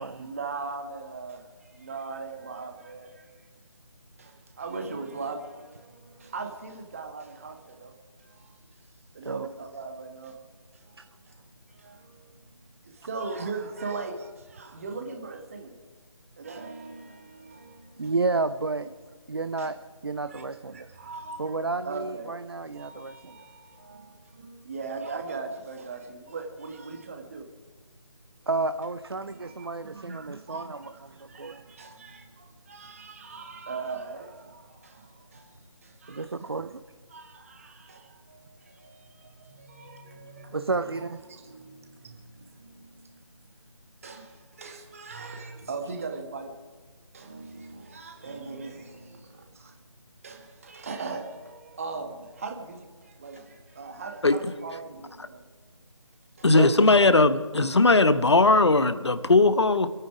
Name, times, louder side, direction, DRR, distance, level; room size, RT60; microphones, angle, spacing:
voice 1, 0.0-3.5 4.2-8.9 9.1-10.4 10.7-11.3 11.7-12.6 12.8-15.8 16.4-18.1 19.6-19.7 20.2-21.6 21.8-22.3 22.7-27.5 29.1-29.8 30.1-36.6 37.1-43.2 44.0-46.6 47.1-49.8 50.2-55.4 56.4-56.5, right 4 dB, 25° right, 1.7 m, -40 dB
voice 2, 18.0-18.9 19.3-19.8 20.0-20.9 21.4-23.4 28.5-30.8 31.1-31.6 36.1-36.8 40.5-41.2 56.5-56.7, right 3 dB, 50° right, 0.6 m, -31 dB
voice 3, 56.4-59.9, left 3 dB, 55° left, 1.2 m, -19 dB
27.0 x 9.4 x 5.0 m
figure-of-eight pair, 160°, 17 cm